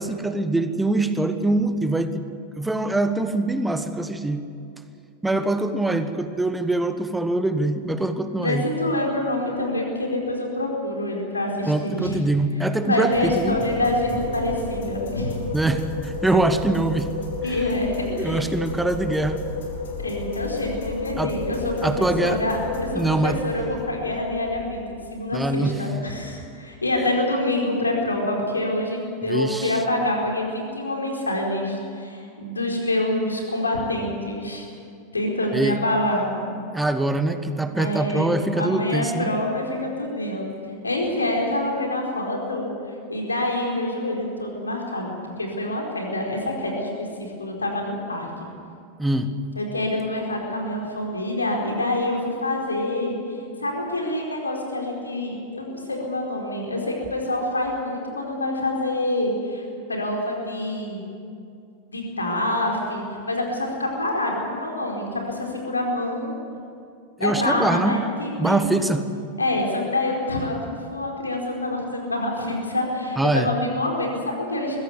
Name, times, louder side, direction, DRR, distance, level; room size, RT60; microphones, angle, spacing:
voice 1, 0.0-2.2 2.6-4.5 5.2-8.7 11.7-13.6 15.5-17.1 18.1-19.4 21.2-21.3 21.8-22.4 22.9-23.4 25.3-25.8 29.3-29.7 35.5-35.8 36.7-39.3 49.0-49.3 67.2-68.0 68.4-69.0 73.2-73.5, right 2 dB, 5° right, 9 dB, 1.4 m, -23 dB
voice 2, 8.3-12.2 12.9-15.4 17.4-18.5 20.0-34.7 35.1-36.3 37.7-40.5 40.8-42.7 43.1-48.5 49.6-61.0 61.9-66.4 67.2-68.8 69.4-74.8, left 1 dB, 80° left, 0 dB, 4.5 m, -26 dB
sound 1, 13.1-24.8, left 3 dB, 60° left, 3.7 m, -32 dB
22.0 x 15.5 x 9.7 m, 2.5 s
figure-of-eight pair, 90°, 0 cm